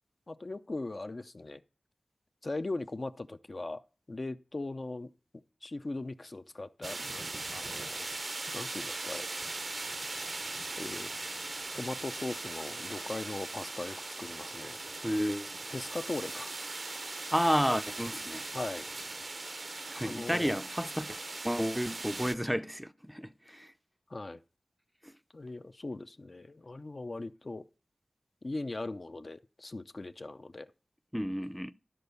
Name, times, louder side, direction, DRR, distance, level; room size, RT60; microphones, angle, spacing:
voice 1, 0.3-1.6 2.4-3.8 4.1-8.1 8.5-9.3 10.8-11.1 11.7-14.8 15.7-16.5 18.5-18.9 19.9-20.6 24.1-24.4 25.3-27.7 28.4-30.7, left 2 dB, 45° left, 0.5 m, -39 dB
sound 1, 6.8-22.4, right 2 dB, 50° right, 0.6 m, -39 dB
voice 2, 15.0-15.5 17.3-18.4 19.9-21.2 21.4-23.7 25.0-25.1 31.1-31.7, equal, ahead, 0.5 m, -31 dB
12.5 x 4.3 x 6.8 m
wide cardioid pair, 65°, 0 cm